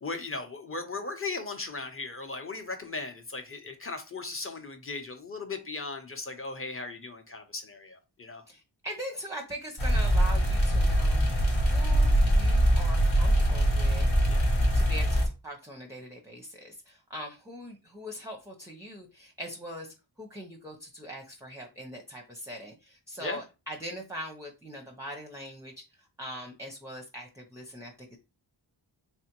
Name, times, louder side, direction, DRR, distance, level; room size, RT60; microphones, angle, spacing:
voice 1, 0.0-8.4 14.3-14.7 23.2-23.4, left 3 dB, 30° left, 0.8 m, -37 dB
voice 2, 8.5-11.2 11.7-14.1 14.7-25.8 26.2-28.2, equal, 5° right, 0.6 m, -41 dB
sound 1, 9.8-15.3, equal, 80° left, 1.3 m, -23 dB
3.4 x 3.3 x 3.0 m
wide cardioid pair, 55°, 45 cm